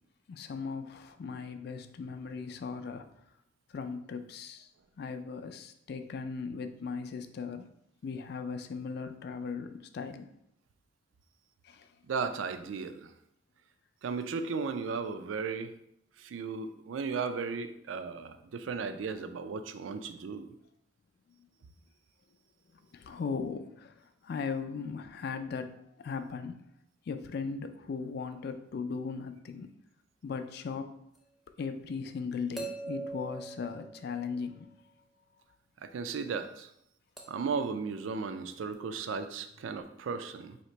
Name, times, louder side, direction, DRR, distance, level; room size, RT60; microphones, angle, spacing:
voice 1, 0.3-3.1 3.7-4.7 5.0-7.7 8.0-10.3 11.6-11.9 22.7-25.7 26.0-26.6 27.1-29.7 30.2-30.9 31.6-34.7, left 5 dB, 55° left, 9 dB, 0.3 m, -38 dB
voice 2, 12.1-13.1 14.0-15.7 16.2-20.5 35.8-36.7 37.3-40.6, right 5 dB, 80° right, 9 dB, 0.4 m, -35 dB
sound 1, 31.2-31.3 32.6-34.6 37.2-37.6 38.7-38.8, right 3 dB, ahead, 0.5 m, -42 dB
2.9 x 2.8 x 4.3 m, 0.75 s
head